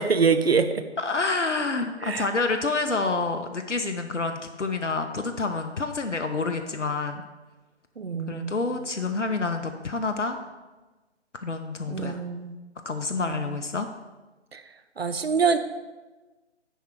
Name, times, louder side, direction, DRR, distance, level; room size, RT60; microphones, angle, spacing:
voice 1, 0.0-0.8 2.0-2.2 8.0-8.5 11.9-12.6 13.2-13.5 14.5-14.6 15.0-15.6, right 5 dB, 60° right, 10 dB, 0.8 m, -25 dB
voice 2, 1.0-7.2 8.3-10.4 11.3-12.2 12.8-13.9, left 3 dB, 85° left, 7 dB, 0.8 m, -28 dB
10.0 x 4.4 x 5.0 m, 1.2 s
figure-of-eight pair, 150°, 35 cm